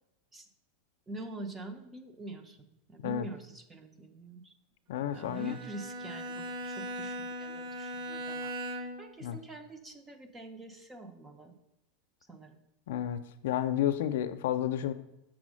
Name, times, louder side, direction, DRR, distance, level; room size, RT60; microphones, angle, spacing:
voice 1, 1.1-4.5 5.1-11.6 12.3-12.6, right 2 dB, 10° right, 7 dB, 0.6 m, -45 dB
voice 2, 4.9-5.6 9.2-9.4 12.9-14.9, left 11 dB, 70° left, 10 dB, 0.5 m, -31 dB
Bowed string instrument, 5.1-9.2, right 1 dB, 40° right, 1.0 m, -39 dB
6.2 x 4.2 x 6.2 m, 0.89 s
supercardioid pair, 175°, 0 cm